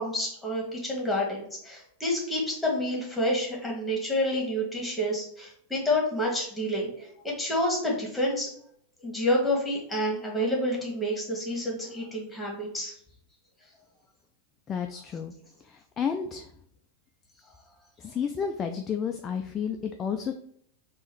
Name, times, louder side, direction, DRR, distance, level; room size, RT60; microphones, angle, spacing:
voice 1, 0.0-8.5 9.0-12.9, left 1 dB, 5° left, -2 dB, 1.5 m, -29 dB
voice 2, 14.7-15.3 15.7-16.5 18.0-20.3, left 7 dB, 25° left, 5 dB, 0.3 m, -31 dB
3.6 x 2.5 x 4.5 m, 0.65 s
figure-of-eight pair, 90°, 0 cm